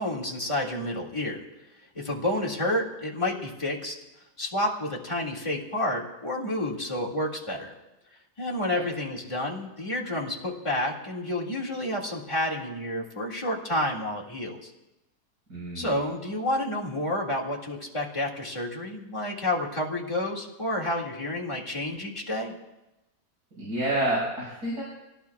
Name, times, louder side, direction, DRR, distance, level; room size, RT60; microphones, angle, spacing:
voice 1, 0.0-1.4 2.0-4.0 4.4-7.7 8.4-14.7 15.7-22.5, left 1 dB, 20° left, -3 dB, 2.1 m, -30 dB
voice 2, 15.5-15.9 23.6-24.8, right 1 dB, 85° right, -7 dB, 6.3 m, -29 dB
25.5 x 18.0 x 2.4 m, 0.98 s
omnidirectional pair, 1.7 m